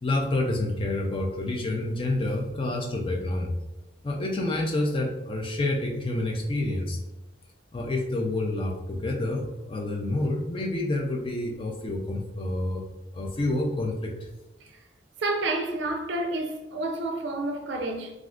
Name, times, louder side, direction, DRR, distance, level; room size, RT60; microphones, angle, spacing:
voice 1, 0.0-3.5 4.0-7.0 7.7-12.8 13.1-14.3, left 2 dB, 25° left, 0.4 m, -28 dB
voice 2, 15.2-18.1, right 2 dB, 65° right, 0.4 m, -29 dB
3.5 x 2.4 x 2.4 m
head